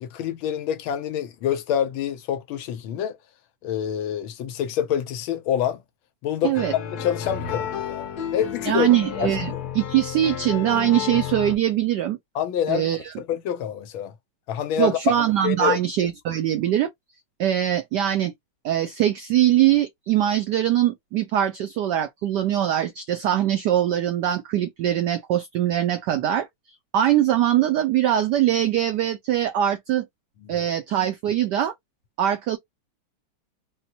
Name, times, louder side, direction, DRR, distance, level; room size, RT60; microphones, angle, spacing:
voice 1, 0.0-3.2 3.6-5.8 6.2-6.6 7.0-8.9 9.2-9.6 12.3-12.9 13.2-14.1 14.5-15.1 15.4-15.8 30.4-30.7, left 9 dB, 75° left, 1.4 m, -26 dB
sound 1, 6.5-11.6, left 8 dB, 60° left, 1.2 m, -31 dB
voice 2, 8.7-12.2 12.7-13.1 14.8-16.9 17.4-18.3 18.6-26.5 26.9-30.1 30.5-31.7 32.2-32.6, right 11 dB, 85° right, 0.9 m, -22 dB
4.2 x 2.1 x 2.7 m
omnidirectional pair, 2.4 m